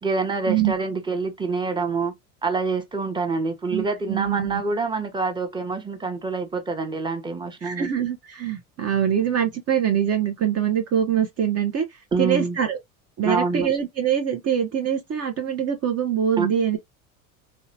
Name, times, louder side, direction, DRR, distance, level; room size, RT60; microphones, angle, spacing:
voice 1, 0.0-2.1 2.4-7.9 12.1-12.6 13.2-13.7 16.4-16.5, right 4 dB, 10° right, 0.8 m, -26 dB
voice 2, 3.7-4.6 7.6-12.8 13.2-16.8, right 9 dB, 35° right, 0.7 m, -24 dB
2.7 x 2.2 x 2.7 m
hypercardioid pair, 85°, 42 cm